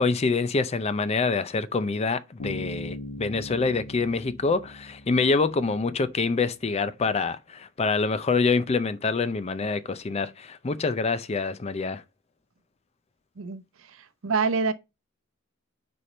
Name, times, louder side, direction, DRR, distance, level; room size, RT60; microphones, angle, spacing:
voice 1, 0.0-12.0, left 4 dB, 30° left, 0.4 m, -26 dB
Bass guitar, 2.4-6.0, left 1 dB, 85° left, 1.1 m, -39 dB
voice 2, 14.2-14.7, right 4 dB, 80° right, 0.7 m, -25 dB
4.9 x 4.3 x 5.1 m
head